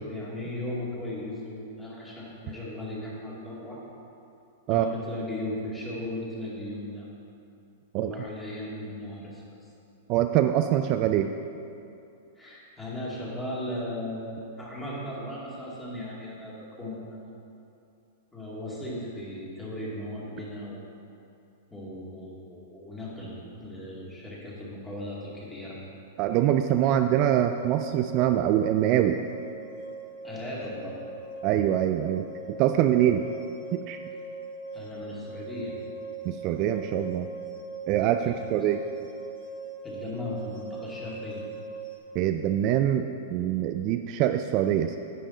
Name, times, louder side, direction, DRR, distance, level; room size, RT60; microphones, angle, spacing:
voice 1, 0.0-3.8 4.7-7.1 8.0-9.4 12.4-17.3 18.3-20.8 21.7-25.8 30.2-31.0 34.7-35.7 38.2-38.5 38.8-38.9 39.8-41.4, left 1 dB, 10° left, -6 dB, 2.2 m, -37 dB
voice 2, 10.1-11.3 26.2-29.2 31.4-33.2 33.7-34.0 36.2-37.3 37.9-38.8 42.1-45.0, right 11 dB, 40° right, 7 dB, 0.3 m, -24 dB
sound 1, 26.9-42.0, right 2 dB, 60° left, 2.2 m, -40 dB
10.0 x 7.6 x 3.8 m, 2.6 s
hypercardioid pair, 140°, 0 cm